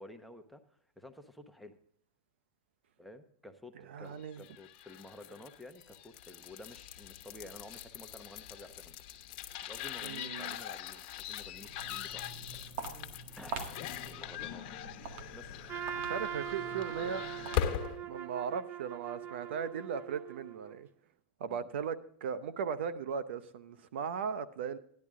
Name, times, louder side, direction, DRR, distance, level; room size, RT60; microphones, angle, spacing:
voice 1, 0.0-1.8 3.0-9.0 9.6-12.5 13.4-13.7 14.1-14.9 15.3-15.6 21.5-21.7, left 1 dB, ahead, 6 dB, 1.0 m, -52 dB
voice 2, 3.9-4.4 10.0-10.6 16.0-17.2 18.1-20.9 21.4-24.8, right 7 dB, 80° right, 15 dB, 0.7 m, -37 dB
sound 1, 4.3-18.0, left 10 dB, 55° left, 1.1 m, -41 dB
Walk footsteps, 11.5-18.0, right 4 dB, 60° right, 1.8 m, -46 dB
Trumpet, 15.7-20.8, right 10 dB, 35° right, 0.5 m, -41 dB
13.5 x 10.5 x 3.7 m, 0.64 s
supercardioid pair, 130°, 6 cm